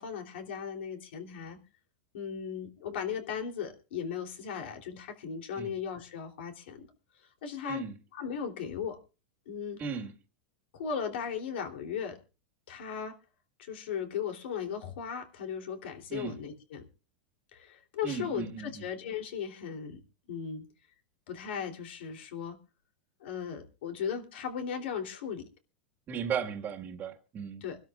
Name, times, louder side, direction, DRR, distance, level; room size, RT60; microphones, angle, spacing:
voice 1, 0.0-1.6 2.1-6.9 7.4-7.8 8.1-9.0 9.5-9.8 10.7-12.2 12.7-13.1 13.6-16.8 17.5-20.0 20.3-20.6 21.3-22.6 23.2-25.5 27.6-27.8, left 7 dB, 75° left, 3.2 m, -37 dB
voice 2, 9.8-10.1 16.1-16.3 18.0-18.8 26.1-27.6, right 6 dB, 30° right, 1.8 m, -36 dB
25.5 x 12.5 x 2.4 m
supercardioid pair, 135°, 6 cm